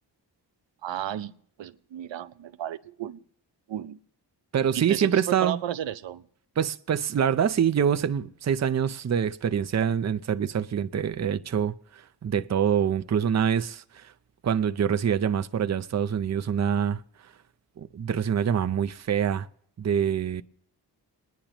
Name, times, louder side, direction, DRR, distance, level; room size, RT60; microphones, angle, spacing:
voice 1, 0.8-1.3 1.6-3.2 3.7-4.0 4.7-6.2, right 11 dB, 85° right, 0.7 m, -33 dB
voice 2, 4.5-5.6 6.6-14.1 14.4-17.0 17.8-19.5 19.8-20.4, right 8 dB, 40° right, 0.6 m, -25 dB
30.0 x 10.0 x 3.0 m
cardioid pair, 85°, 43 cm